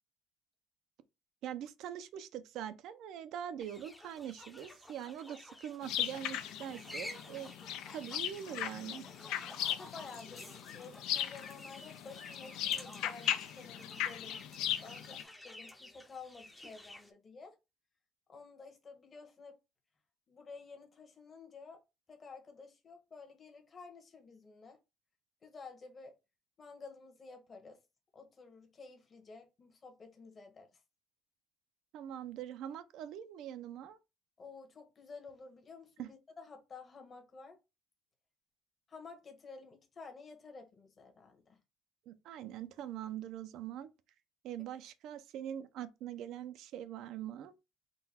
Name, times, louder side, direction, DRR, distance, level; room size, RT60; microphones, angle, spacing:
voice 1, 1.4-7.5 7.9-9.1 31.9-34.0 36.0-36.1 42.1-43.9 44.4-47.5, right 10 dB, 70° right, 0.5 m, -43 dB
sound 1, 3.6-17.1, left 1 dB, 10° left, 0.6 m, -52 dB
sound 2, 5.8-15.2, left 11 dB, 75° left, 0.4 m, -38 dB
voice 2, 9.7-14.4 14.8-17.6 18.3-19.5 20.3-21.8 22.1-24.8 25.4-26.1 26.6-27.8 28.1-30.8 34.4-37.6 38.9-41.6, left 4 dB, 30° left, 1.1 m, -52 dB
3.9 x 2.3 x 4.2 m
cardioid pair, 120°, 0 cm